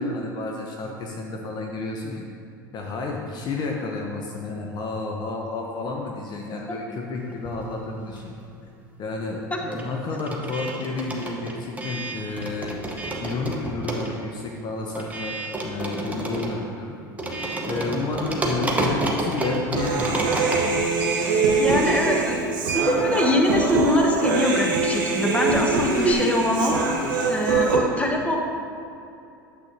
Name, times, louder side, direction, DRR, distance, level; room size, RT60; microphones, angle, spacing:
voice 1, 0.0-2.2 2.7-8.3 9.0-12.8 13.2-15.4 15.6-17.0 17.7-21.1, left 3 dB, 40° left, 1 dB, 0.9 m, -31 dB
sound 1, 7.3-8.6 8.8-26.1, right 2 dB, 15° right, 1.1 m, -31 dB
Human voice, 19.8-27.8, right 4 dB, 70° right, 1.2 m, -24 dB
voice 2, 21.6-22.4 22.7-26.8 27.3-28.4, equal, 10° left, 0 dB, 1.2 m, -23 dB
9.2 x 7.5 x 2.8 m, 2.6 s
hypercardioid pair, 80°, 11 cm